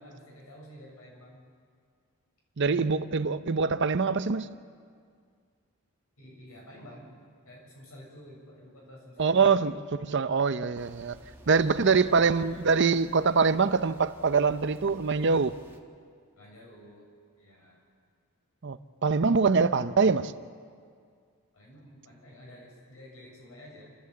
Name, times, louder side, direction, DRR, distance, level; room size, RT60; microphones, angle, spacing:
voice 1, 0.0-1.4 2.8-2.9 6.2-7.2 7.4-9.7 11.9-12.3 16.3-17.1 17.4-17.8 21.5-24.0, equal, 80° left, 7.5 m, -50 dB
voice 2, 2.6-4.5 9.2-11.2 11.5-15.6 18.6-20.3, right 5 dB, 55° right, 0.7 m, -24 dB
sound 1, 10.7-15.8, equal, 10° right, 1.6 m, -53 dB
28.0 x 13.5 x 8.4 m
head